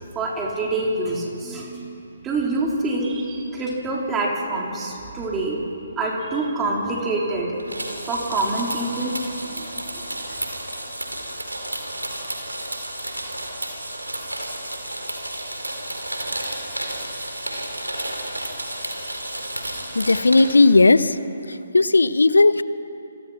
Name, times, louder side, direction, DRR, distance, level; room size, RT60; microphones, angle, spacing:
voice 1, 0.1-1.8 2.2-5.6 6.0-7.5 8.1-9.1 9.5-10.0, right 2 dB, 15° right, -2 dB, 4.1 m, -26 dB
sound 1, 7.6-20.5, right 1 dB, 90° right, 4.6 m, -31 dB
voice 2, 19.9-21.2 21.7-22.6, left 3 dB, 75° left, 15 dB, 1.0 m, -15 dB
27.5 x 25.0 x 6.0 m, 2.9 s
figure-of-eight pair, 140°, 0 cm